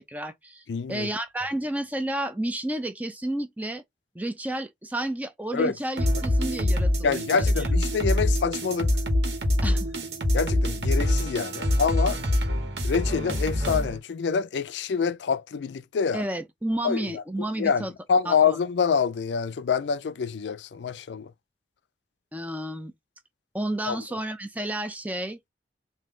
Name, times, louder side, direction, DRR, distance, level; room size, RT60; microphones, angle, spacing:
voice 1, 0.0-3.8 4.1-7.2 7.6-7.7 9.6-9.9 16.1-17.9 18.2-18.6 22.3-22.9 23.5-25.4, right 1 dB, 10° right, 0.6 m, -31 dB
voice 2, 0.7-1.1 5.5-5.7 7.0-8.9 10.3-12.2 12.8-16.2 16.8-17.2 17.6-21.3 23.9-24.0, left 6 dB, 90° left, 0.4 m, -26 dB
sound 1, 6.0-14.0, left 1 dB, 80° right, 1.5 m, -25 dB
3.7 x 2.7 x 3.8 m
head